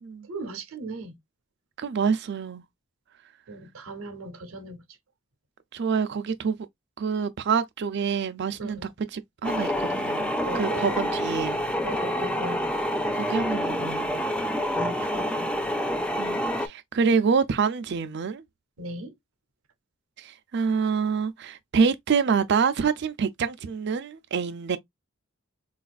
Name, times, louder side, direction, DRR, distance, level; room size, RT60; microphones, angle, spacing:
voice 1, 0.3-1.2 3.5-4.8 8.6-8.9 10.5-11.2 11.8-12.7 14.7-15.6 18.8-19.1, right 2 dB, 80° right, 0.7 m, -37 dB
voice 2, 1.8-2.6 5.7-6.6 7.0-8.8 9.4-11.6 13.1-14.2 16.2-18.4 20.2-24.8, right 5 dB, 55° right, 0.4 m, -26 dB
sound 1, 9.4-16.7, equal, 5° left, 0.3 m, -27 dB
3.9 x 2.4 x 2.2 m
head